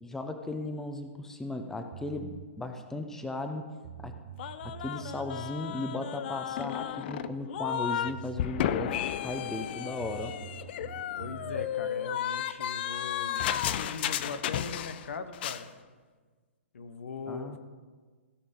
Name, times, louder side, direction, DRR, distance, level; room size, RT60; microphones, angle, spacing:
voice 1, 0.0-3.7 4.0-4.1 4.6-10.4 17.3-17.6, left 2 dB, 5° left, 6 dB, 0.7 m, -36 dB
sound 1, 1.9-2.5 3.5-3.6 3.8-5.5 7.7-7.8 8.1-9.3 10.0-11.7, right 13 dB, 55° right, 0.5 m, -46 dB
sound 2, 4.4-8.1 8.4-15.1 15.3-15.6, left 10 dB, 50° left, 0.5 m, -33 dB
voice 2, 11.2-15.7 16.7-17.6, left 5 dB, 75° left, 10 dB, 1.0 m, -40 dB
16.0 x 5.6 x 5.2 m, 1.4 s
hypercardioid pair, 125°, 7 cm